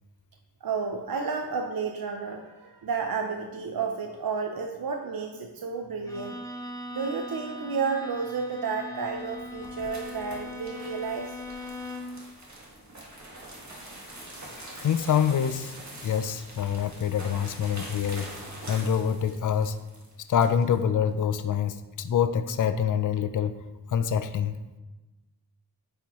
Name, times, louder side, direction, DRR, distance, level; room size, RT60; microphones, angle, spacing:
voice 1, 0.6-6.4 6.9-11.4, right 5 dB, 60° right, 3 dB, 0.6 m, -31 dB
Bowed string instrument, 6.1-12.3, left 2 dB, 10° left, 0.9 m, -40 dB
sound 1, 9.2-20.8, right 1 dB, 45° right, 1.8 m, -44 dB
voice 2, 14.8-15.7 16.0-18.3 18.7-19.8 20.3-23.6 23.9-24.6, left 8 dB, 55° left, 11 dB, 0.4 m, -26 dB
8.8 x 4.6 x 3.0 m, 1.1 s
wide cardioid pair, 50°, 39 cm